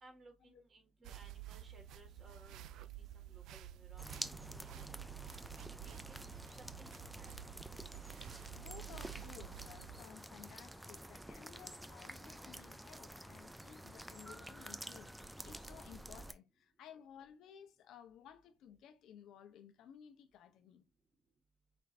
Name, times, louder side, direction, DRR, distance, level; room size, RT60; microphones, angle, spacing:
voice 1, 0.0-2.9 3.2-4.9 5.6-6.2 6.6-7.6, right 2 dB, 40° right, 1.8 m, -62 dB
sound 1, 1.0-10.0, right 12 dB, 85° right, 0.3 m, -51 dB
sound 2, 4.0-16.3, right 1 dB, 5° right, 0.4 m, -50 dB
voice 2, 8.5-20.8, left 9 dB, 85° left, 0.7 m, -57 dB
5.1 x 2.6 x 3.3 m
cardioid pair, 90°, 0 cm